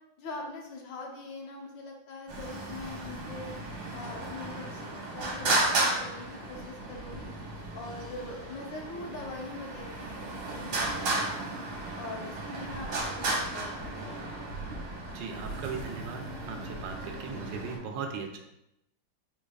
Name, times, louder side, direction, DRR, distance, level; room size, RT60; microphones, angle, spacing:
voice 1, 0.2-3.5 3.9-7.3 7.7-11.5 11.9-14.2, left 2 dB, 75° left, 1 dB, 1.4 m, -43 dB
Traffic noise roadway noise, 2.3-17.8, right 2 dB, 60° right, 1.5 m, -34 dB
voice 2, 15.1-18.4, right 5 dB, 75° right, 4 dB, 1.2 m, -38 dB
5.1 x 3.5 x 2.3 m, 0.86 s
omnidirectional pair, 2.1 m